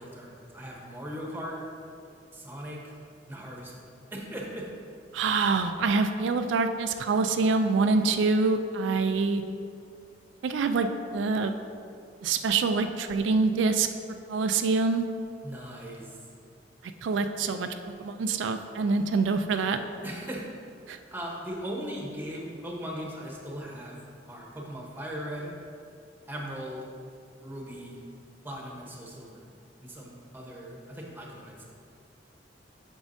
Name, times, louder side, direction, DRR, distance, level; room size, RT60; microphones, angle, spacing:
voice 1, 0.0-1.6 2.3-2.8 3.3-4.7 15.4-16.1 20.0-20.5 21.1-24.0 24.3-25.5 26.3-26.8 27.4-28.0 28.4-29.4 29.8-31.7, equal, 10° right, -2 dB, 0.9 m, -38 dB
voice 2, 5.1-9.4 10.4-11.5 12.2-13.9 14.3-15.0 17.0-17.7 18.0-19.8 20.9-21.0, right 4 dB, 85° right, 7 dB, 0.3 m, -25 dB
8.2 x 6.1 x 2.6 m, 2.4 s
head